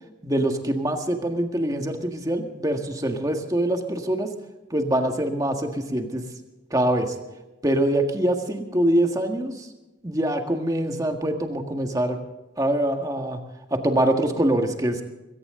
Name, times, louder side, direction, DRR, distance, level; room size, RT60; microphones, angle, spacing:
voice 1, 0.2-4.3 4.7-6.2 6.7-7.1 7.6-9.7 10.0-12.2 12.6-13.4 13.7-15.0, right 1 dB, 20° right, 4 dB, 1.8 m, -24 dB
21.5 x 17.5 x 3.8 m, 1.0 s
head